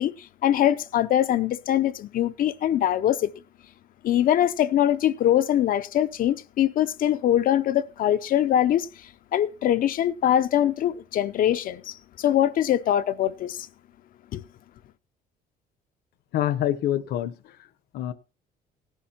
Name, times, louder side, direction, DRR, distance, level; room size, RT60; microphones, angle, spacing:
voice 1, 0.0-3.3 4.0-8.9 9.3-13.7 14.3-14.4, left 11 dB, 55° left, 0.5 m, -23 dB
voice 2, 16.3-17.6 17.9-18.1, left 12 dB, 75° left, 0.9 m, -26 dB
17.0 x 11.5 x 2.8 m
cardioid pair, 110°, 17 cm